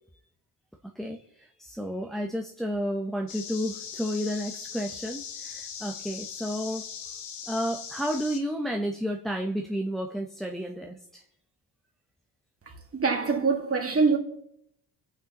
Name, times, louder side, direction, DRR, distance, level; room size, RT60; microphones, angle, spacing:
voice 1, 0.8-7.1 7.5-11.2, equal, ahead, 1.0 m, -32 dB
sound 1, 3.3-8.4, left 7 dB, 90° left, 1.7 m, -40 dB
voice 2, 12.7-14.2, right 4 dB, 35° right, 2.4 m, -25 dB
25.5 x 9.1 x 3.9 m
cardioid pair, 95°, 41 cm